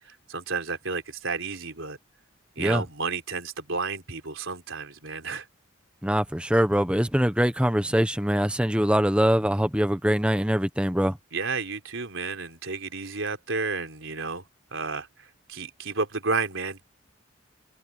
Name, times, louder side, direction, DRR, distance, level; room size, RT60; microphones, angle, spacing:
voice 1, 0.0-2.0 2.6-5.5 11.3-14.4 14.7-16.9, right 4 dB, 75° right, 3.9 m, -31 dB
voice 2, 6.0-11.2, equal, 5° right, 1.0 m, -23 dB
head